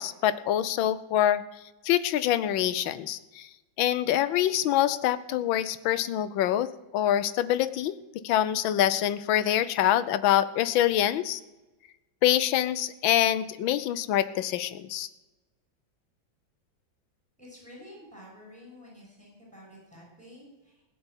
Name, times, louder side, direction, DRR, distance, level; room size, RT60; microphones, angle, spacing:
voice 1, 0.0-1.4 1.8-3.5 3.8-8.0 8.2-11.4 12.2-15.1, left 12 dB, 75° left, 14 dB, 1.5 m, -25 dB
voice 2, 17.4-20.8, left 1 dB, 5° left, -4 dB, 6.5 m, -50 dB
17.0 x 6.9 x 9.8 m, 1.1 s
omnidirectional pair, 2.2 m